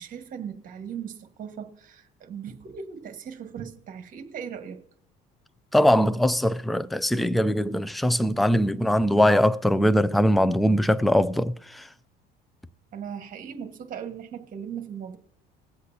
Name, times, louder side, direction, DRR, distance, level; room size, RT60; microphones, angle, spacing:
voice 1, 0.0-4.8 12.9-15.2, right 7 dB, 45° right, 1.5 m, -38 dB
voice 2, 5.7-11.9, equal, ahead, 0.3 m, -21 dB
21.0 x 7.9 x 2.8 m
cardioid pair, 125°, 20 cm